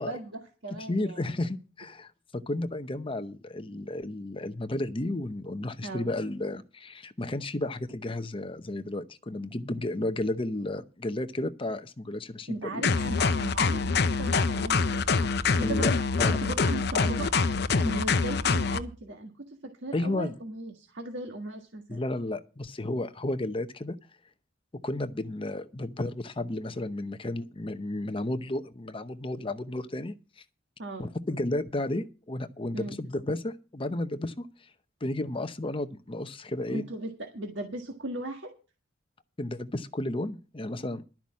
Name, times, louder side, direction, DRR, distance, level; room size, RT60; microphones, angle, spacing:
voice 1, 0.0-1.3 5.8-6.1 12.5-15.9 16.4-17.3 17.6-22.0 30.8-31.1 32.7-33.0 36.7-38.5, right 2 dB, 65° right, 1.6 m, -38 dB
voice 2, 0.9-12.9 15.6-15.9 16.2-16.4 19.9-20.4 21.9-24.0 24.8-30.1 31.0-34.5 35.0-36.8 39.4-41.0, left 1 dB, 25° left, 0.8 m, -32 dB
sound 1, 12.8-18.8, left 4 dB, 55° left, 0.8 m, -25 dB
12.0 x 5.9 x 8.4 m
head